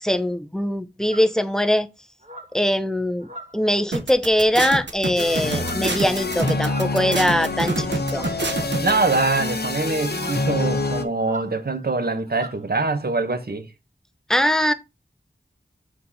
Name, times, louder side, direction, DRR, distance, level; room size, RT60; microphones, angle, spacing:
voice 1, 0.0-1.9 2.5-3.3 3.5-7.9 8.1-8.3 14.3-14.7, equal, 5° left, 0.8 m, -21 dB
sound 1, 1.1-1.4 2.2-2.6 3.2-3.8 4.5-4.9 5.5-6.0 6.6-7.0 8.1-8.5 9.1-9.6 10.1-10.5 11.2-11.5 11.8-12.0 12.3-12.6, equal, 40° right, 1.5 m, -40 dB
sound 2, 3.9-8.9, right 3 dB, 85° right, 1.2 m, -26 dB
sound 3, 5.2-11.0, left 2 dB, 65° left, 1.2 m, -27 dB
voice 2, 8.8-13.7, right 3 dB, 60° right, 1.2 m, -23 dB
7.5 x 4.2 x 4.1 m
wide cardioid pair, 55°, 18 cm